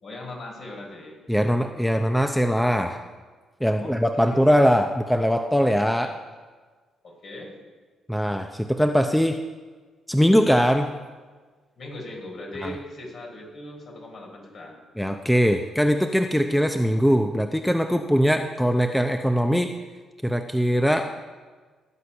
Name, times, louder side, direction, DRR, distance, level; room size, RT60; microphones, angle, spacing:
voice 1, 0.0-1.2 3.7-4.4 6.0-6.1 7.0-7.5 11.8-14.8, left 1 dB, 55° left, 0 dB, 4.4 m, -39 dB
voice 2, 1.3-3.0 3.6-6.1 8.1-9.4 10.1-10.9 12.6-12.7 15.0-19.7 20.2-21.1, equal, ahead, 6 dB, 0.6 m, -21 dB
17.0 x 8.1 x 5.7 m, 1.4 s
cardioid pair, 90°, 0 cm